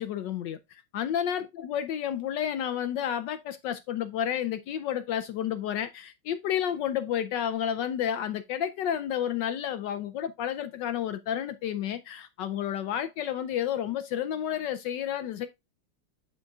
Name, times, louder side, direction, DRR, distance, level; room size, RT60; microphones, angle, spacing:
voice 1, 0.0-15.5, left 10 dB, 80° left, 1.0 m, -31 dB
11.5 x 3.9 x 2.3 m
omnidirectional pair, 2.4 m